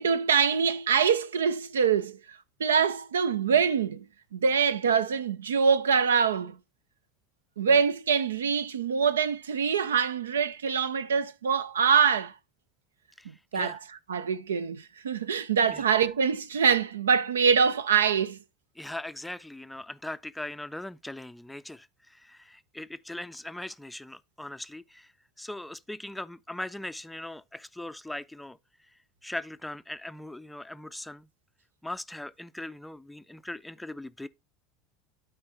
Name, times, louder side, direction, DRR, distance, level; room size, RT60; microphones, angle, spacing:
voice 1, 0.0-2.2 2.6-4.0 4.3-6.6 7.6-12.3 13.5-13.8 14.1-18.4, right 6 dB, 75° right, 0.4 m, -24 dB
voice 2, 13.2-13.8 15.7-15.8 18.8-25.1 25.4-28.6 29.2-31.3 31.8-34.3, left 1 dB, 5° left, 0.4 m, -40 dB
12.0 x 4.4 x 2.8 m
figure-of-eight pair, 70°, 0 cm